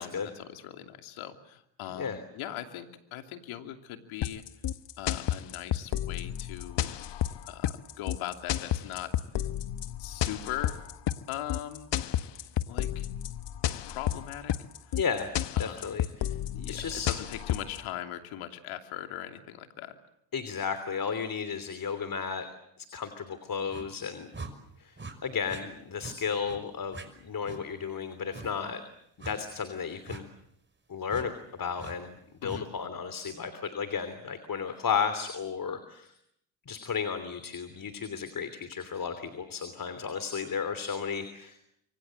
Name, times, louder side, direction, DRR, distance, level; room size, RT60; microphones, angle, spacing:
voice 1, 0.0-4.4 5.0-6.9 7.4-9.1 10.0-10.8 11.3-11.9 12.7-13.1 13.9-14.5 15.5-15.9 16.5-20.0 32.4-32.6, left 12 dB, 75° left, 6 dB, 2.9 m, -40 dB
sound 1, 4.2-17.8, left 11 dB, 55° left, 1.3 m, -31 dB
voice 2, 15.0-15.3 15.6-16.3 16.7-17.1 20.3-22.5 22.9-24.3 24.8-24.9 25.2-28.8 29.2-30.2 30.9-31.3 31.6-36.1 36.7-41.6, left 6 dB, 40° left, 11 dB, 3.2 m, -33 dB
sound 2, 23.7-23.9 24.3-24.5 25.0-25.1 25.5-25.6 26.0-26.2 26.4-26.6 26.9-27.1 27.4-27.6 28.3-28.5 29.2-29.4 30.1-30.2 31.1-31.3 31.8-32.0 32.4-32.6, right 3 dB, 25° right, 5.7 m, -42 dB
26.0 x 24.5 x 7.8 m, 0.76 s
supercardioid pair, 70°, 49 cm